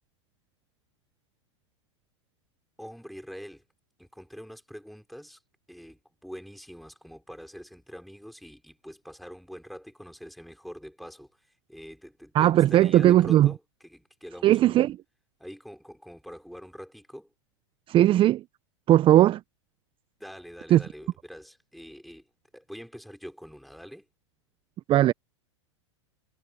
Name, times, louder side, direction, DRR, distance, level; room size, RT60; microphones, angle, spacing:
voice 1, 2.8-3.6 4.0-5.4 5.7-14.9 15.4-17.3 20.2-24.1, equal, ahead, 5.0 m, -44 dB
voice 2, 12.3-13.5 14.4-15.0 17.9-18.4 18.9-19.4 20.7-20.8 24.9-25.1, right 13 dB, 35° right, 1.1 m, -18 dB
hypercardioid pair, 95°, 15 cm